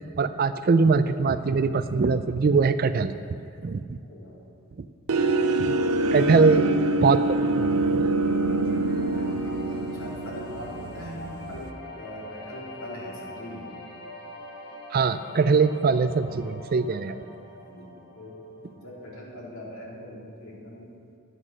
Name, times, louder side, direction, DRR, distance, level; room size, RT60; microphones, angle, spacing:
voice 1, 0.2-4.0 5.6-5.7 6.1-6.7 7.0-7.2 7.5-8.1 14.9-17.2, right 5 dB, 45° right, 12 dB, 0.3 m, -22 dB
voice 2, 4.1-4.4 6.0-6.6 8.5-13.7 17.0-17.2 17.6-18.4 18.8-20.9, equal, 70° left, -5 dB, 3.1 m, -41 dB
sound 1, 5.1-11.7, right 2 dB, 80° right, 0.6 m, -25 dB
sound 2, 8.2-19.2, left 2 dB, 45° left, 1.7 m, -44 dB
11.0 x 8.1 x 6.1 m, 2.4 s
head